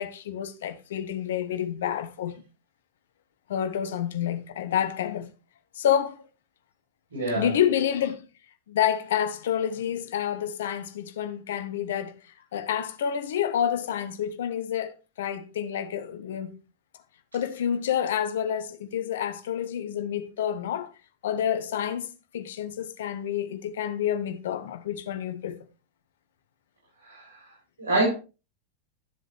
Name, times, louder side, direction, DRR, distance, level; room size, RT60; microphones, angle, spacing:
voice 1, 0.0-2.4 3.5-5.3 5.7-6.2 7.4-8.3 8.7-12.1 12.5-16.6 17.3-20.9 21.2-25.6, left 9 dB, 60° left, 1.1 m, -28 dB
voice 2, 7.1-7.5 27.0-27.5 27.8-28.1, right 2 dB, 70° right, 6.7 m, -26 dB
12.5 x 7.6 x 3.3 m
figure-of-eight pair, 90°, 0 cm